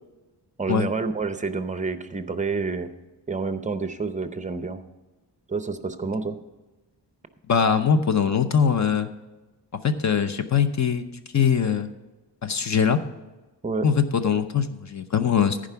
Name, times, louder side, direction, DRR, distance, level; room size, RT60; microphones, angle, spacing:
voice 1, 0.6-2.9 3.3-4.8 5.5-6.4 13.6-13.9, right 4 dB, 20° right, 10 dB, 0.6 m, -28 dB
voice 2, 7.5-9.1 9.8-11.0 11.3-11.9 12.4-13.0 13.8-15.7, left 7 dB, 45° left, 10 dB, 0.7 m, -22 dB
14.0 x 5.0 x 5.7 m, 1.1 s
wide cardioid pair, 175°, 41 cm